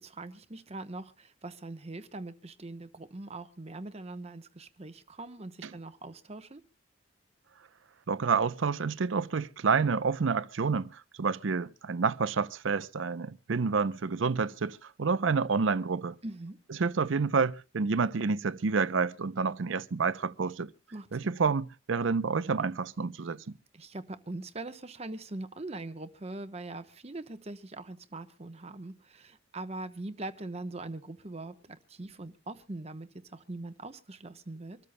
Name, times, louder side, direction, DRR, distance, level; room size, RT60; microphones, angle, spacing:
voice 1, 0.0-6.6 16.2-16.6 20.9-21.1 23.7-34.8, right 2 dB, 30° right, 0.9 m, -42 dB
voice 2, 8.1-16.2 16.8-20.7 21.1-23.5, right 5 dB, 70° right, 0.6 m, -29 dB
26.0 x 13.5 x 2.2 m
head